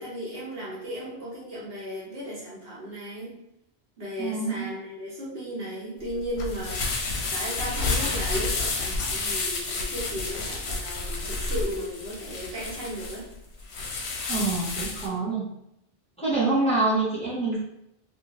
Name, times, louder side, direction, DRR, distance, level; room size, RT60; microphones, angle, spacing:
voice 1, 0.0-3.3 4.0-6.9 7.3-13.3, equal, 65° right, -6 dB, 1.2 m, -35 dB
voice 2, 4.2-4.7 14.3-15.5 16.2-17.6, right 3 dB, 5° left, -9 dB, 0.8 m, -26 dB
sound 1, 6.0-15.1, left 3 dB, 85° left, 0.9 m, -30 dB
2.6 x 2.5 x 2.9 m, 0.81 s
omnidirectional pair, 1.1 m